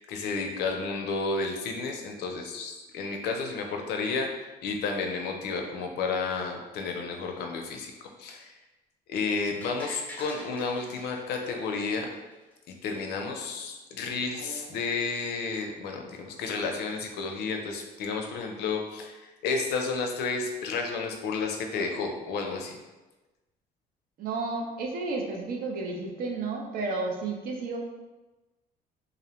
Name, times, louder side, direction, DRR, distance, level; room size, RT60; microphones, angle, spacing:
voice 1, 0.0-7.9 8.2-8.5 9.1-12.1 12.8-22.8, left 4 dB, 75° left, 3 dB, 0.4 m, -31 dB
sound 1, 9.6-12.5 12.9-13.0, left 1 dB, 10° left, 0.4 m, -46 dB
voice 2, 14.3-14.8 24.2-27.8, right 3 dB, 60° right, 1 dB, 0.5 m, -32 dB
2.5 x 2.0 x 2.9 m, 1.1 s
cardioid pair, 110°, 17 cm